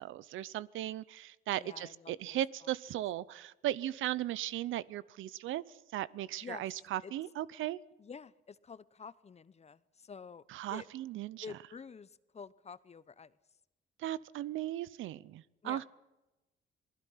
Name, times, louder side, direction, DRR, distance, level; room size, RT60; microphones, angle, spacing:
voice 1, 0.0-7.8 10.5-11.5 14.0-15.8, right 13 dB, 80° right, 20 dB, 0.7 m, -37 dB
voice 2, 1.5-3.0 6.4-6.6 7.0-7.1 8.0-10.4 10.7-10.9 11.4-13.3 15.6-15.8, left 5 dB, 35° left, 17 dB, 0.9 m, -49 dB
27.5 x 19.5 x 5.8 m, 1.0 s
cardioid pair, 90°, 20 cm